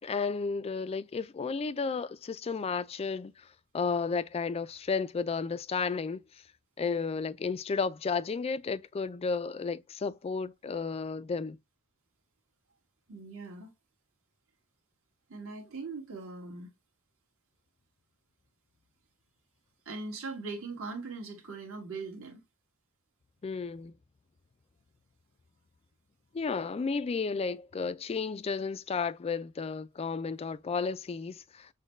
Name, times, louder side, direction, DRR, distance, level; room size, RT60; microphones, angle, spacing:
voice 1, 0.0-3.5 3.7-6.2 6.8-11.6 23.4-23.9 26.3-31.7, left 5 dB, 25° left, 0.3 m, -33 dB
voice 2, 13.1-13.7 15.3-16.7 19.9-22.4, right 3 dB, 65° right, 1.7 m, -40 dB
6.3 x 2.2 x 3.1 m
head